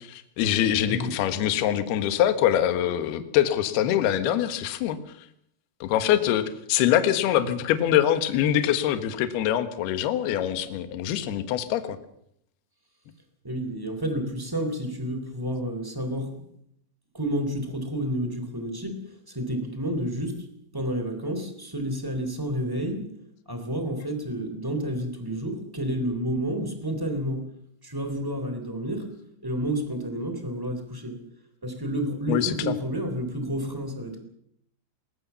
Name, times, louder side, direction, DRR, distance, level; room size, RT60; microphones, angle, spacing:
voice 1, 0.4-5.0 5.8-12.0 32.3-32.7, left 11 dB, 65° left, 10 dB, 2.9 m, -24 dB
voice 2, 13.4-16.3 17.1-19.0 19.3-20.4 20.7-23.0 23.5-27.5 27.8-29.1 29.4-31.2 31.6-34.2, equal, 5° right, 7 dB, 2.3 m, -30 dB
21.0 x 20.0 x 7.1 m, 0.73 s
omnidirectional pair, 6.0 m